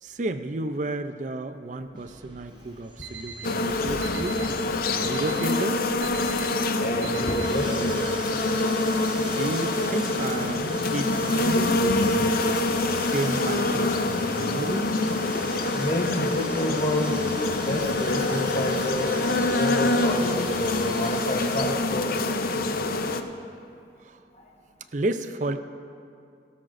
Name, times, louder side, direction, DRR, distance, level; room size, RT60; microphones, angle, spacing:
voice 1, 0.0-4.4 4.9-5.9 9.2-12.4 13.0-15.0 24.0-24.2 24.9-25.6, right 2 dB, 45° right, 10 dB, 0.5 m, -32 dB
sound 1, 2.0-21.6, right 3 dB, 25° right, 0.9 m, -42 dB
Alarm, 3.0-3.5 4.0-4.5 5.0-5.5 6.0-6.5 7.0-7.5, right 7 dB, 85° right, 1.1 m, -39 dB
sound 2, 3.4-23.2, left 2 dB, 55° left, 0.5 m, -25 dB
voice 2, 3.7-4.1 4.7-5.1 6.3-6.5 6.8-8.0 15.7-17.2 17.5-22.2, left 1 dB, 40° left, 1 dB, 1.0 m, -29 dB
17.5 x 12.5 x 2.6 m, 2.4 s
head